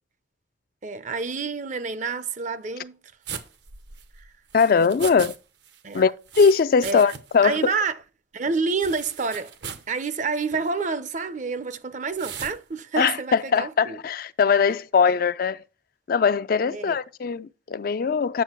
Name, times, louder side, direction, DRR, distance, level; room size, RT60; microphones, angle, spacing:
voice 1, 0.8-3.0 5.8-6.0 6.8-7.0 7.4-8.0 8.3-9.5 9.9-14.0 16.7-17.0, right 4 dB, 40° right, 0.6 m, -28 dB
sound 1, 3.3-5.4 5.6-7.4 7.7-7.8 8.8-9.9 10.4-10.7 12.2-12.6, right 7 dB, 65° right, 0.9 m, -38 dB
voice 2, 4.5-5.3 5.9-7.6 13.0-15.6 16.1-18.4, left 5 dB, 50° left, 0.4 m, -21 dB
8.4 x 6.4 x 4.4 m
head